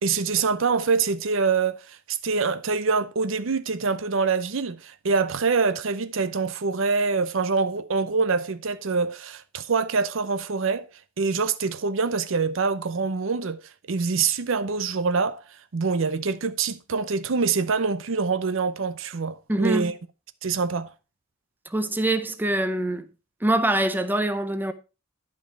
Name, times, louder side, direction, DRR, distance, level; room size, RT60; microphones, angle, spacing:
voice 1, 0.0-10.9 11.2-13.6 13.9-15.4 15.7-20.0 20.4-20.9, right 4 dB, 65° right, 0.6 m, -25 dB
voice 2, 19.5-19.9 21.7-23.1 23.4-24.7, right 1 dB, 10° right, 0.6 m, -24 dB
11.5 x 5.3 x 4.5 m
head